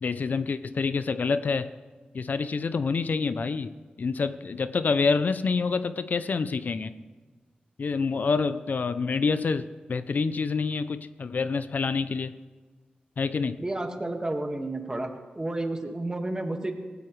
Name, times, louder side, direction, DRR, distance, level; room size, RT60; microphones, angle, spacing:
voice 1, 0.0-1.7 2.1-6.9 7.8-12.3 13.2-13.6, left 4 dB, 60° left, 12 dB, 0.5 m, -27 dB
voice 2, 13.3-15.1 15.4-16.7, right 2 dB, 25° right, 4 dB, 1.8 m, -31 dB
17.5 x 16.0 x 3.3 m, 1.4 s
cardioid pair, 65°, 3 cm